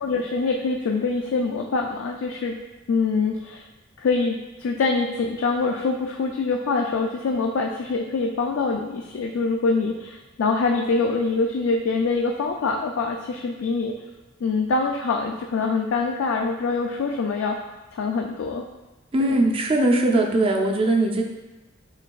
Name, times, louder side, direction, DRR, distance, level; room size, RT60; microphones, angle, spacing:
voice 1, 0.0-2.6 2.9-3.6 4.0-13.9 14.4-17.6 17.9-18.6 19.3-19.4, left 4 dB, 70° left, 2 dB, 0.3 m, -24 dB
voice 2, 19.1-21.2, right 1 dB, 25° right, 2 dB, 0.4 m, -20 dB
6.4 x 3.2 x 2.3 m, 1.1 s
head